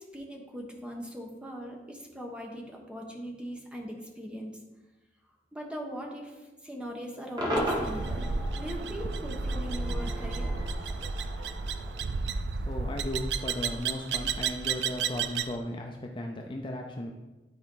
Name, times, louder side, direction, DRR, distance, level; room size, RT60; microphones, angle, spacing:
voice 1, 0.0-4.6 5.5-8.3 8.6-10.6, equal, 5° right, 0 dB, 1.2 m, -40 dB
Cheering / Crowd / Fireworks, 7.4-12.7, equal, 25° right, 1.7 m, -36 dB
sound 1, 7.6-15.6, right 5 dB, 75° right, 0.4 m, -32 dB
voice 2, 12.7-17.1, left 1 dB, 30° left, 2 dB, 0.6 m, -36 dB
11.5 x 4.5 x 3.9 m, 1.1 s
head